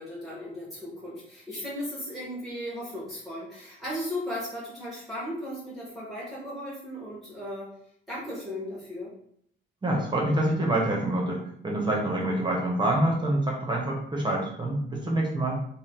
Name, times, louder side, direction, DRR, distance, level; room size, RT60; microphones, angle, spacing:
voice 1, 0.0-7.7 8.1-9.1, left 1 dB, ahead, -7 dB, 1.0 m, -36 dB
voice 2, 9.8-15.6, right 1 dB, 25° right, -1 dB, 0.8 m, -26 dB
2.6 x 2.1 x 3.5 m, 0.66 s
cardioid pair, 90°, 20 cm